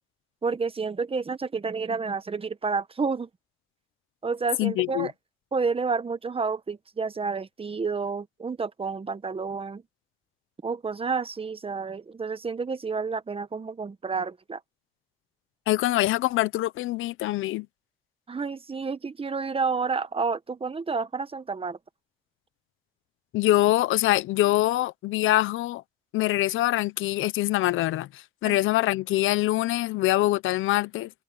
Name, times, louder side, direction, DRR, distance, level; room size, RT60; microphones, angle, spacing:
voice 1, 0.4-3.3 4.2-5.1 5.5-9.8 10.6-14.6 18.3-21.8 28.4-28.6, right 4 dB, 30° right, 1.3 m, -30 dB
voice 2, 4.6-5.1 15.7-17.7 23.3-25.8 26.1-31.1, left 16 dB, 85° left, 0.8 m, -24 dB
cardioid pair, 90°, 20 cm